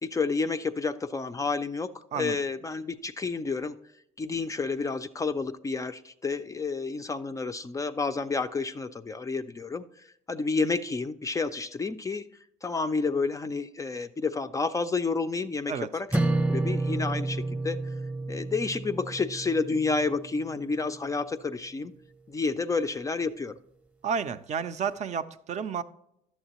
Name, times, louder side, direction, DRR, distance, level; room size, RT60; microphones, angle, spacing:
voice 1, 0.0-3.8 4.2-12.3 12.6-16.1 16.5-17.9 18.3-21.9 22.3-23.5, left 4 dB, 20° left, 10 dB, 0.3 m, -30 dB
sound 1, 16.1-20.5, right 2 dB, 10° right, 0.7 m, -30 dB
voice 2, 24.0-25.8, right 6 dB, 45° right, 11 dB, 0.4 m, -31 dB
11.0 x 7.2 x 2.9 m, 0.76 s
cardioid pair, 110°, 17 cm